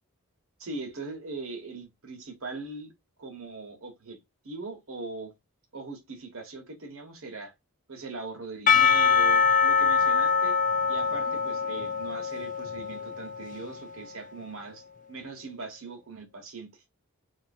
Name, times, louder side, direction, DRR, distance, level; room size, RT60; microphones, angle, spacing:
voice 1, 0.6-2.9 3.2-4.2 4.4-5.3 5.7-7.5 7.9-10.6 10.9-16.8, right 3 dB, 70° right, 1.3 m, -40 dB
Percussion / Church bell, 8.7-13.9, left 6 dB, 35° left, 0.3 m, -24 dB
3.3 x 2.9 x 2.6 m
head